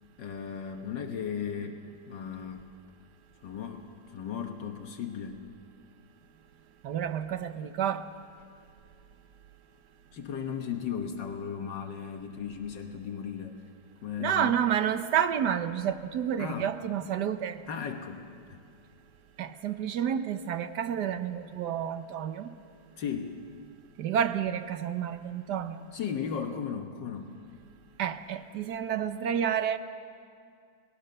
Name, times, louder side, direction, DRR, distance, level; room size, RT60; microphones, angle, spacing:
voice 1, 0.2-1.8 2.1-2.6 3.4-5.4 10.1-13.6 14.0-14.6 16.4-16.8 17.7-18.2 18.5-18.6 23.0-23.4 25.9-27.3, left 7 dB, 75° left, 1.9 m, -36 dB
voice 2, 6.8-8.1 14.2-17.6 19.4-22.5 24.0-25.8 28.0-29.8, right 9 dB, 70° right, 1.3 m, -30 dB
30.0 x 19.0 x 6.6 m
omnidirectional pair, 2.0 m